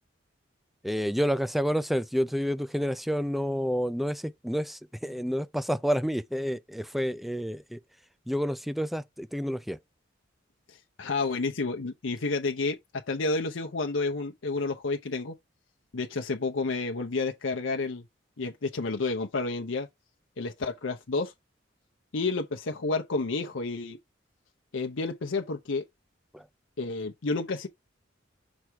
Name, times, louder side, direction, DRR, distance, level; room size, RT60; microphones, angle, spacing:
voice 1, 0.8-7.8 8.3-9.8 26.3-26.4, equal, ahead, 0.4 m, -29 dB
voice 2, 10.7-15.3 15.9-18.0 18.4-19.9 20.4-21.3 22.1-24.0 24.7-25.8 26.8-27.7, left 3 dB, 85° left, 0.8 m, -30 dB
6.1 x 3.5 x 4.6 m
head